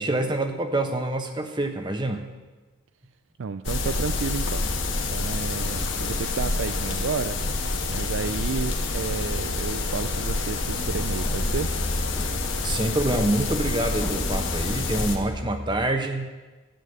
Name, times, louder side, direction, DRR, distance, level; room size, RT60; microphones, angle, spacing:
voice 1, 0.0-2.2 12.6-16.3, right 1 dB, 20° right, 6 dB, 1.0 m, -26 dB
voice 2, 3.4-4.6 5.1-7.4 7.9-11.7, right 5 dB, 60° right, 11 dB, 0.4 m, -31 dB
sound 1, 3.6-15.2, left 2 dB, 60° left, 1.6 m, -27 dB
sound 2, 10.6-15.9, left 1 dB, 10° left, 1.3 m, -37 dB
13.0 x 9.5 x 8.1 m, 1.2 s
head